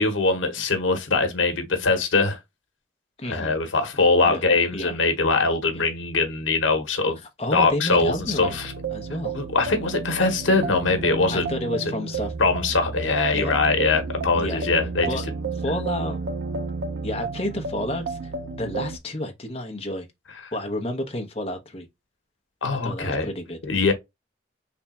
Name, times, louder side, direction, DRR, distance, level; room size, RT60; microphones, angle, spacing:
voice 1, 0.0-2.4 3.3-7.2 7.5-8.7 9.3-11.5 12.4-15.1 22.6-23.3 23.6-23.9, left 3 dB, 90° left, 1.0 m, -22 dB
voice 2, 3.2-3.6 4.2-4.4 4.7-5.0 5.7-5.8 7.4-8.6 8.9-9.4 11.3-12.3 13.3-13.6 14.4-14.7 15.1-15.2 15.5-16.2 17.0-18.3 18.6-20.1 20.5-21.9 22.7-23.6, left 1 dB, 30° left, 0.8 m, -30 dB
sound 1, 7.9-19.0, right 3 dB, 70° right, 0.5 m, -32 dB
3.4 x 2.3 x 4.1 m
head